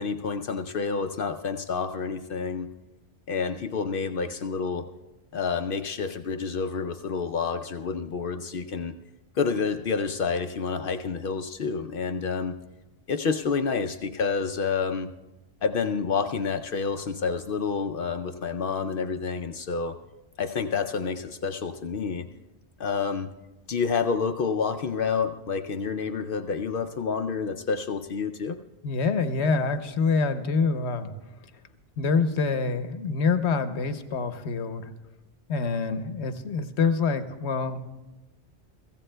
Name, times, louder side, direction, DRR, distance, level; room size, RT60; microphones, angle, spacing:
voice 1, 0.0-2.7 3.3-4.8 5.3-8.9 9.4-12.5 13.1-15.1 15.6-20.0 20.4-22.3 22.8-23.3 23.7-28.6, left 5 dB, 60° left, 7 dB, 0.7 m, -28 dB
voice 2, 28.8-31.1 32.0-34.9 35.5-38.0, left 4 dB, 80° left, 9 dB, 1.1 m, -26 dB
23.5 x 15.0 x 2.2 m, 1.0 s
omnidirectional pair, 1.1 m